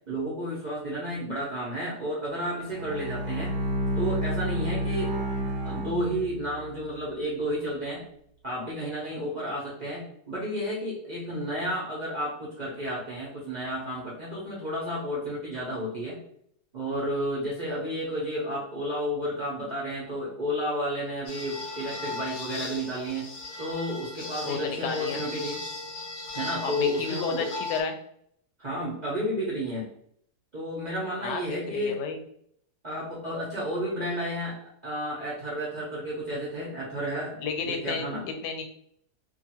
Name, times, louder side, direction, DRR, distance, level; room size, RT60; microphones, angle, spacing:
voice 1, 0.1-3.5 4.0-5.1 5.6-8.0 8.4-16.2 16.7-23.3 23.6-25.6 26.3-27.5 28.6-29.9 30.5-32.0 32.8-38.3, equal, 45° right, -6 dB, 0.5 m, -32 dB
Bowed string instrument, 2.6-6.7, right 1 dB, 90° right, 1.2 m, -30 dB
sound 1, 21.3-27.8, left 2 dB, 65° left, 0.9 m, -37 dB
voice 2, 24.4-25.2 26.6-28.0 31.2-32.2 37.4-38.1 38.4-38.6, left 5 dB, 90° left, 5 dB, 1.2 m, -32 dB
2.7 x 2.4 x 2.8 m, 0.67 s
omnidirectional pair, 1.7 m